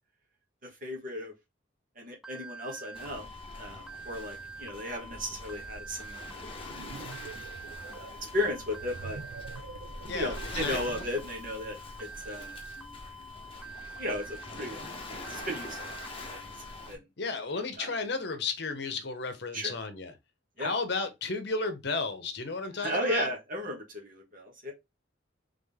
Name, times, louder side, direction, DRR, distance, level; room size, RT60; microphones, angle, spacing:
voice 1, 0.6-1.3 2.0-3.3 3.6-6.4 7.8-9.2 10.1-12.6 14.0-16.5 16.9-17.0 17.8-18.0 19.5-19.7 20.6-20.7 22.7-24.7, left 1 dB, 45° right, 1.4 m, -35 dB
sound 1, 2.2-16.9, right 2 dB, ahead, 0.5 m, -46 dB
Waves surf, 2.9-17.0, left 2 dB, 30° left, 0.9 m, -44 dB
sound 2, 6.5-11.3, right 5 dB, 85° right, 0.4 m, -46 dB
voice 2, 10.1-10.8 17.2-20.1 20.6-23.3, left 4 dB, 55° left, 0.8 m, -33 dB
3.7 x 3.5 x 3.5 m
head